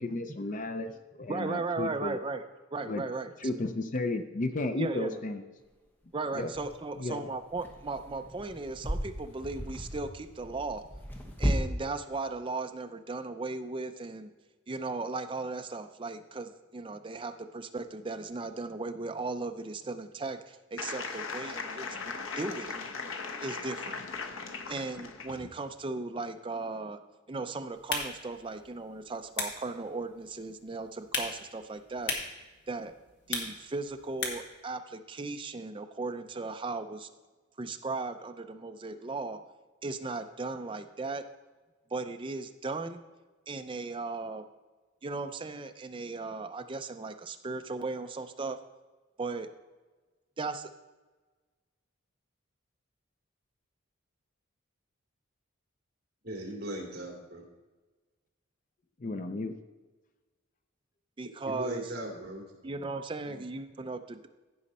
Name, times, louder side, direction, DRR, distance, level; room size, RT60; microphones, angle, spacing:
voice 1, 0.0-2.2 2.9-3.0 3.4-5.4 6.4-6.5 7.0-7.2 59.0-59.5, left 2 dB, 40° left, 8 dB, 0.5 m, -33 dB
voice 2, 1.3-2.4 2.7-3.5 4.8-5.2 6.1-10.8 11.4-14.3 14.7-22.7 23.4-24.0 24.7-27.0 27.3-32.2 32.7-32.9 33.3-37.1 37.6-39.4 39.8-41.2 41.9-43.0 43.5-44.5 45.0-48.6 49.2-49.5 50.4-50.7 61.2-61.9 62.6-64.3, right 3 dB, 25° right, 7 dB, 0.5 m, -37 dB
sound 1, 5.6-5.7 6.5-6.7 7.5-11.6, equal, 10° left, 1.0 m, -35 dB
sound 2, 20.8-25.5, left 4 dB, 75° left, 0.9 m, -38 dB
sound 3, 27.7-34.6, left 3 dB, 60° left, 1.6 m, -39 dB
voice 3, 56.2-57.4 61.5-62.8 63.2-63.4, right 1 dB, 50° right, -1 dB, 2.5 m, -39 dB
15.5 x 5.2 x 4.2 m, 1.3 s
head